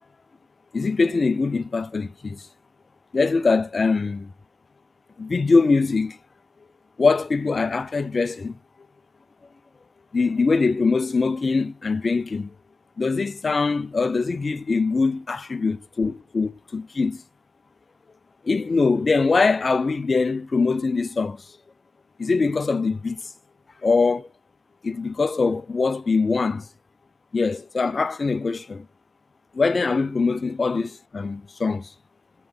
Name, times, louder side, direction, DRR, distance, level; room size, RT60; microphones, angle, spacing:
voice 1, 0.7-2.4 3.1-4.3 5.2-6.2 7.0-8.6 10.1-12.5 13.0-17.2 18.4-21.4 22.2-23.2 23.8-24.3 24.8-26.7 27.3-28.9 29.5-31.9, left 4 dB, 30° left, 0.3 m, -22 dB
8.8 x 5.3 x 5.2 m
cardioid pair, 95°, 0 cm